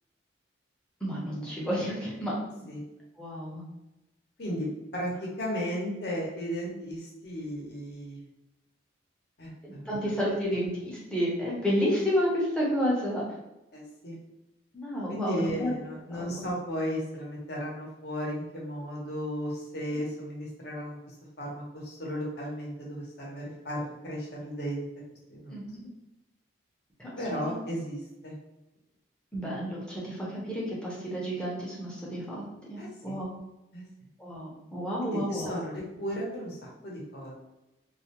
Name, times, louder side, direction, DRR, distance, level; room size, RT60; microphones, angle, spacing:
voice 1, 1.0-2.3 3.2-3.6 9.6-13.2 14.7-15.7 16.1-16.5 25.5-25.9 27.0-27.5 29.3-32.4 32.7-33.4 34.2-35.6, equal, 5° left, -6 dB, 0.6 m, -31 dB
voice 2, 4.4-8.3 9.4-10.0 13.7-14.2 15.1-21.0 21.4-24.9 25.3-25.6 27.2-28.3 32.8-33.2 33.7-33.9 35.0-37.3, equal, 55° left, -3 dB, 0.8 m, -35 dB
2.4 x 2.1 x 2.8 m, 0.96 s
head